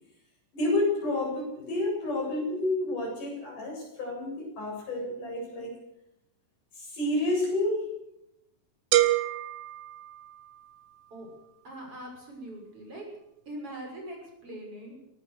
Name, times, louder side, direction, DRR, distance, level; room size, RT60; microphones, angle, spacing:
voice 1, 0.5-5.8 6.7-7.9, left 2 dB, 65° left, 0 dB, 9.2 m, -30 dB
sound 1, 8.9-10.8, right 14 dB, 85° right, 3.1 m, -27 dB
voice 2, 11.6-13.1 13.5-15.0, right 1 dB, 40° right, 1 dB, 7.0 m, -42 dB
22.0 x 18.5 x 6.5 m, 0.84 s
omnidirectional pair, 4.0 m